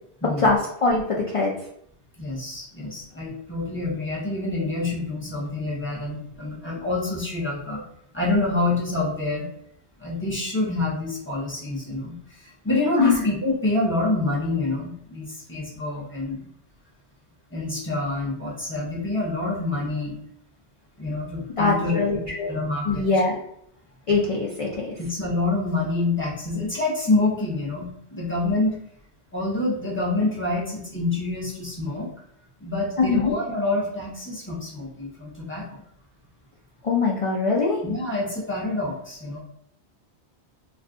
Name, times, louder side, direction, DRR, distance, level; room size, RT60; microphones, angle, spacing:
voice 1, 0.4-1.5 13.0-13.2 21.6-22.5 22.9-23.4 24.1-24.9 33.0-33.3 36.8-37.8, left 3 dB, 55° left, -3 dB, 0.3 m, -22 dB
voice 2, 2.2-7.8 8.1-9.5 10.0-16.5 17.5-20.2 21.0-23.0 25.0-28.8 29.3-32.1 32.6-35.8 37.8-39.4, left 2 dB, 15° left, -5 dB, 0.7 m, -27 dB
2.4 x 2.2 x 3.5 m, 0.72 s
omnidirectional pair, 1.2 m